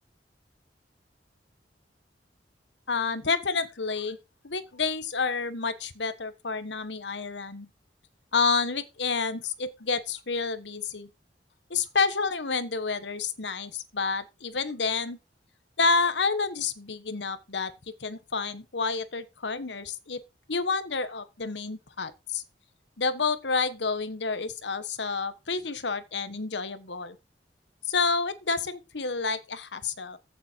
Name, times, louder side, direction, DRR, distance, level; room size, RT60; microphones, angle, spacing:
voice 1, 2.9-4.2 4.4-7.7 8.3-11.1 11.7-15.2 15.8-17.7 18.0-20.2 20.5-22.4 23.0-27.2 27.9-30.2, left 4 dB, 90° left, 1.3 m, -29 dB
15.0 x 7.1 x 4.6 m
head